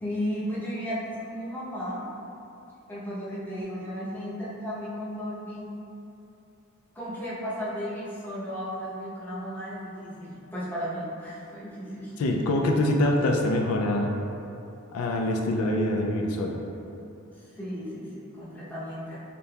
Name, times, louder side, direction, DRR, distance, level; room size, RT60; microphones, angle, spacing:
voice 1, 0.0-2.1 2.9-5.7 6.9-12.4 17.5-19.2, equal, 10° left, -9 dB, 0.7 m, -34 dB
voice 2, 12.2-14.1 14.9-16.6, left 1 dB, 85° left, 1 dB, 0.4 m, -24 dB
5.1 x 2.8 x 2.2 m, 2.8 s
head